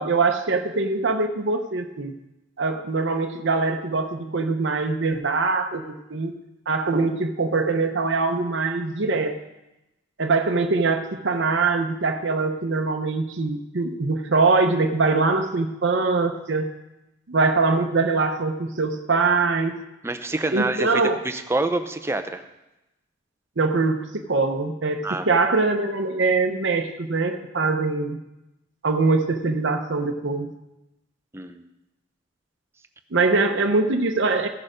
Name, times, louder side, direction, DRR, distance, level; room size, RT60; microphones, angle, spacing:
voice 1, 0.0-2.1 2.6-6.3 6.7-9.4 10.2-16.7 17.3-19.8 20.5-21.2 23.6-28.2 28.8-30.5 33.1-34.5, right 3 dB, 60° right, 4 dB, 0.7 m, -23 dB
voice 2, 20.0-22.4 25.0-25.2 31.3-31.6, right 2 dB, 15° right, 7 dB, 0.6 m, -27 dB
15.5 x 6.6 x 5.0 m, 0.96 s
head